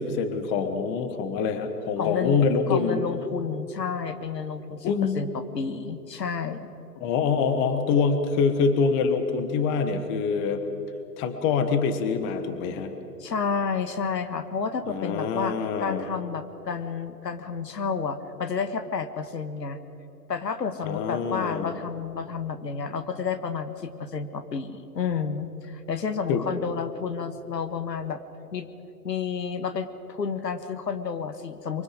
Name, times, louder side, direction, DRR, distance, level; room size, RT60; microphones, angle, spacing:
voice 1, 0.0-3.0 4.8-5.2 7.0-10.6 11.2-12.9 14.9-16.0 20.9-21.7 26.3-26.5, left 5 dB, 25° left, 9 dB, 1.3 m, -25 dB
voice 2, 2.0-6.7 13.2-19.8 20.3-28.2 28.5-28.7 29.0-31.8, left 6 dB, 85° left, 10 dB, 1.5 m, -30 dB
24.0 x 24.0 x 5.1 m, 2.9 s
hypercardioid pair, 125°, 48 cm